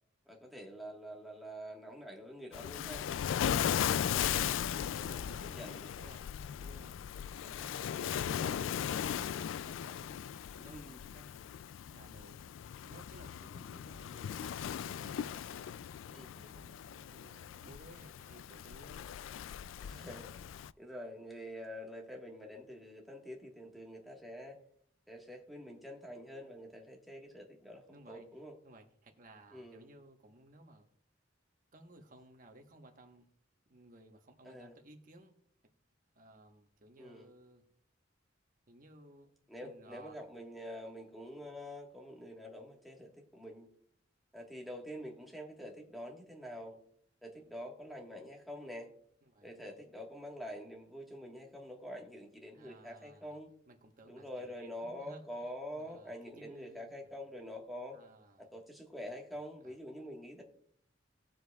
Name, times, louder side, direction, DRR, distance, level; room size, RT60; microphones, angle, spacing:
voice 1, 0.2-3.1 5.5-6.0 10.7-11.0 16.1-16.3 19.8-20.3 20.8-24.6 25.1-28.5 29.5-29.9 34.4-34.7 37.0-37.3 39.5-43.7 44.3-46.8 47.2-48.9 49.4-53.5 54.1-58.0 58.4-60.4, equal, ahead, -1 dB, 1.5 m, -46 dB
Waves surf, 2.5-20.7, left 9 dB, 90° left, 0.3 m, -38 dB
voice 2, 4.9-7.0 7.4-10.8 11.1-11.5 11.8-12.4 12.9-15.8 16.4-19.0 27.9-28.3 28.6-30.9 31.7-33.3 33.7-35.4 36.1-37.6 38.7-39.3 39.6-40.2 49.3-49.8 52.5-53.4 53.7-57.1 57.9-58.5 59.6-59.7, right 1 dB, 45° right, 4 dB, 1.2 m, -58 dB
19.0 x 7.7 x 2.4 m, 0.66 s
head